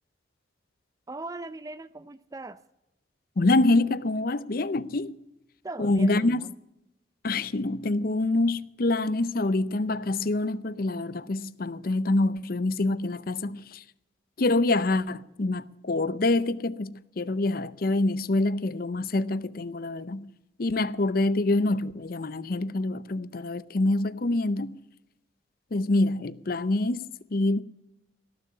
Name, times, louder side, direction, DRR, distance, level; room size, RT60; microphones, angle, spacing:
voice 1, 1.1-2.6 5.6-6.5, right 2 dB, 20° right, 0.4 m, -39 dB
voice 2, 3.4-5.2 5.8-6.4 7.2-13.8 14.4-20.3 20.6-24.8 25.7-27.6, left 2 dB, 50° left, 0.6 m, -26 dB
17.5 x 7.0 x 9.5 m
head